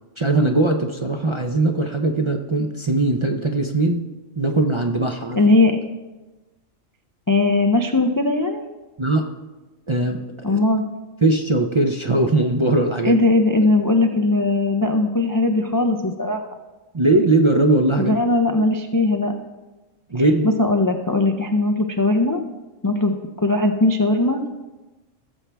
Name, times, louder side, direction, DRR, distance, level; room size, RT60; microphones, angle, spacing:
voice 1, 0.2-4.1 4.4-5.4 9.0-9.3 9.9-10.2 10.5-10.6 11.2-13.2 16.9-18.1 20.1-20.5, right 2 dB, 35° right, 3 dB, 0.5 m, -20 dB
voice 2, 5.4-5.8 7.3-8.6 10.4-10.8 13.0-16.5 18.0-19.3 20.1-20.2 20.6-22.4 22.8-24.4, left 2 dB, 30° left, 4 dB, 0.4 m, -19 dB
17.5 x 7.3 x 3.4 m, 1.1 s
omnidirectional pair, 1.3 m